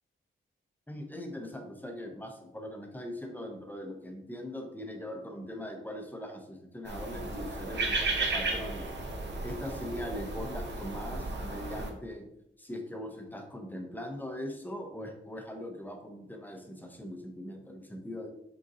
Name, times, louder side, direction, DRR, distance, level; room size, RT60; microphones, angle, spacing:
voice 1, 0.9-8.9 9.4-12.2 12.6-18.3, left 1 dB, 10° left, 3 dB, 0.6 m, -41 dB
sound 1, 6.9-11.9, right 3 dB, 60° right, 0.6 m, -34 dB
3.9 x 3.6 x 2.6 m, 0.80 s
wide cardioid pair, 120°, 21 cm